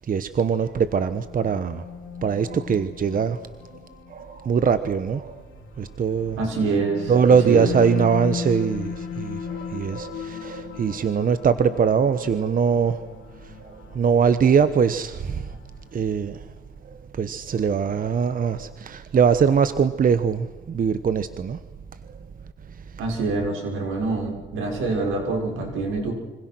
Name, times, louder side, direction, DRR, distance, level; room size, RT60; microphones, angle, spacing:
voice 1, 0.1-1.8 2.2-3.4 4.1-5.3 5.8-6.4 7.1-13.1 13.9-15.4 15.9-16.4 17.2-21.6, right 6 dB, 45° right, 12 dB, 1.2 m, -22 dB
sound 1, 1.0-16.3, left 6 dB, 85° left, 2.9 m, -37 dB
voice 2, 6.4-8.1 23.0-26.1, right 3 dB, 85° right, 2 dB, 6.1 m, -26 dB
26.5 x 25.5 x 6.2 m, 1.3 s
cardioid pair, 90°, 20 cm